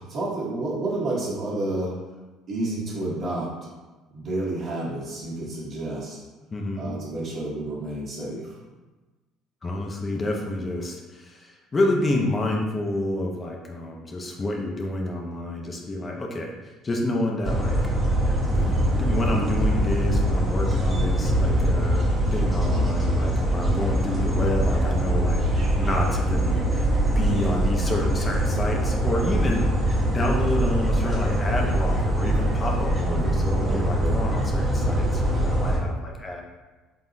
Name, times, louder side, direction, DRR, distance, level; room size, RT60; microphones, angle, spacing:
voice 1, 0.0-1.9 2.5-3.7 4.1-6.2 6.8-8.6 22.6-22.8 32.9-33.8, right 2 dB, 50° right, -5 dB, 1.5 m, -30 dB
voice 2, 6.5-6.9 9.6-16.6 16.8-17.8 18.5-29.8 30.1-36.4, left 1 dB, 30° left, 0 dB, 0.7 m, -29 dB
sound 1, 17.4-35.8, right 1 dB, 25° right, 1.1 m, -23 dB
3.9 x 3.8 x 2.5 m, 1.2 s
hypercardioid pair, 60°, 0 cm